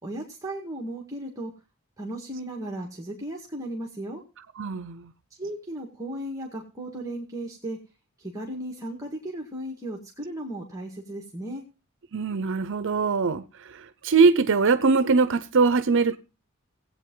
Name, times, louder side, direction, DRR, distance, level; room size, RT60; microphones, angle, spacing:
voice 1, 0.0-1.5 2.0-4.2 5.4-7.8 8.2-11.7, right 1 dB, 15° right, 1.9 m, -35 dB
voice 2, 4.6-5.1 12.1-16.2, right 4 dB, 60° right, 0.7 m, -22 dB
18.0 x 8.5 x 3.8 m
head